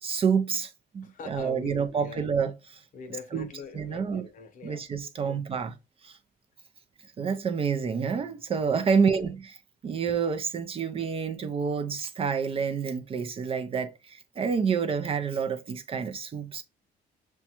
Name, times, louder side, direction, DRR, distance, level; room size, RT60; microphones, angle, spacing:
voice 1, 0.0-2.8 3.3-3.5 3.7-4.3 4.6-5.7 6.0-6.2 7.2-9.6 9.8-16.6, right 6 dB, 35° right, 0.4 m, -28 dB
voice 2, 1.0-2.3 2.9-4.9 5.3-5.4, left 5 dB, 50° left, 0.8 m, -43 dB
5.8 x 2.2 x 2.9 m
cardioid pair, 110°, 17 cm